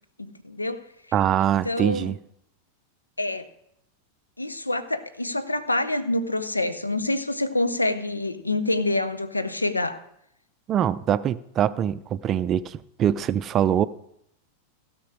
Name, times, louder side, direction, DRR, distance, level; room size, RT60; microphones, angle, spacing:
voice 1, 0.2-0.8 1.6-2.1 3.2-3.5 4.4-10.0, left 2 dB, 80° left, 0.7 m, -26 dB
voice 2, 1.1-2.2 10.7-13.9, right 10 dB, 30° right, 0.4 m, -23 dB
16.0 x 6.1 x 4.8 m
figure-of-eight pair, 90°, 0 cm